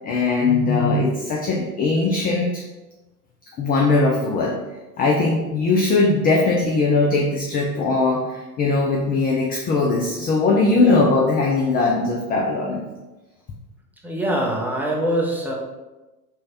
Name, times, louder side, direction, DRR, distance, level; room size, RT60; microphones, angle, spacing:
voice 1, 0.0-2.6 3.6-4.6 5.0-12.8, left 3 dB, 20° left, -1 dB, 0.5 m, -20 dB
voice 2, 14.0-15.5, right 1 dB, 5° right, -3 dB, 0.9 m, -23 dB
3.5 x 3.2 x 4.3 m, 1.1 s
hypercardioid pair, 90°, 46 cm